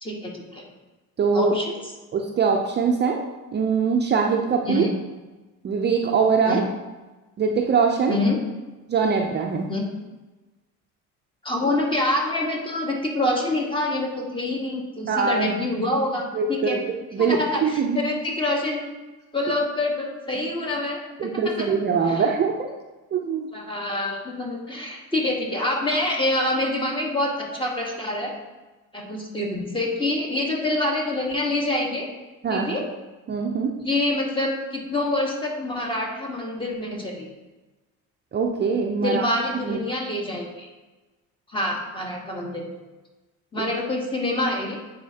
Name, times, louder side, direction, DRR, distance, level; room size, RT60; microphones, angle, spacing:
voice 1, 0.0-0.6 1.3-1.8 4.6-4.9 6.5-6.6 8.1-8.3 9.7-9.8 11.4-16.8 17.2-18.8 19.3-21.8 22.1-22.3 23.5-28.3 28.9-32.1 32.5-32.9 33.8-37.3 39.0-40.7 41.5-42.8 43.5-44.8, left 1 dB, 15° left, -1 dB, 1.3 m, -26 dB
voice 2, 1.2-1.5 2.1-3.2 3.5-4.8 5.6-6.7 7.4-8.1 8.9-9.7 15.1-15.5 16.3-18.0 21.2-22.7 23.1-23.5 32.4-32.8 33.3-33.7 38.3-39.3 39.6-39.8 43.6-43.7, right 5 dB, 35° right, 1 dB, 0.5 m, -22 dB
9.4 x 4.2 x 2.8 m, 1.2 s
cardioid pair, 110°, 32 cm